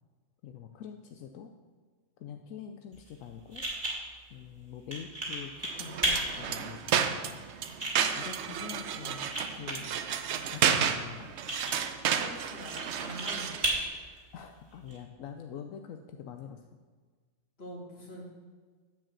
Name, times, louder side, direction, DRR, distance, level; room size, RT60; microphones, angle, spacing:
voice 1, 0.4-1.5 2.2-3.7 4.3-7.4 8.2-10.0 10.4-11.3 14.3-16.6, left 8 dB, 85° left, 5 dB, 1.0 m, -44 dB
sound 1, 2.9-15.0, right 1 dB, 30° right, 2.2 m, -37 dB
sound 2, 5.7-13.8, right 8 dB, 65° right, 0.9 m, -31 dB
voice 2, 12.1-13.8 17.6-18.2, equal, 50° left, -3 dB, 2.4 m, -44 dB
9.5 x 5.0 x 7.4 m, 1.5 s
omnidirectional pair, 1.4 m